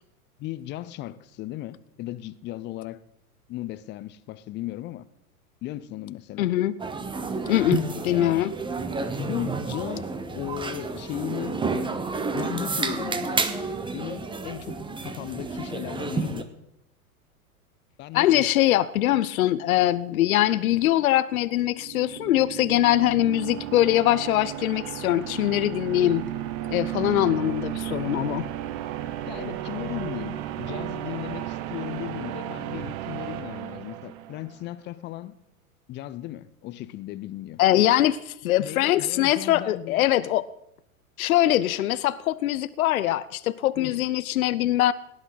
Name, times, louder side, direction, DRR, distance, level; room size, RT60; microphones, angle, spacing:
voice 1, 0.4-3.0 3.5-5.1 5.6-6.5 9.2-11.6 12.3-13.4 13.9-16.5 18.0-18.5 27.1-27.3 29.2-35.3 35.9-37.6 38.6-40.1 43.8-44.0, left 15 dB, 25° left, 0.6 m, -36 dB
voice 2, 6.4-6.8 7.5-8.6 18.1-26.3 26.7-28.5 37.6-40.4 41.2-44.9, left 14 dB, 70° left, 0.7 m, -22 dB
sound 1, 6.8-16.4, right 3 dB, 10° right, 1.0 m, -30 dB
sound 2, 21.6-34.6, right 13 dB, 45° right, 1.1 m, -34 dB
18.0 x 11.0 x 4.0 m
hypercardioid pair, 100°, 45 cm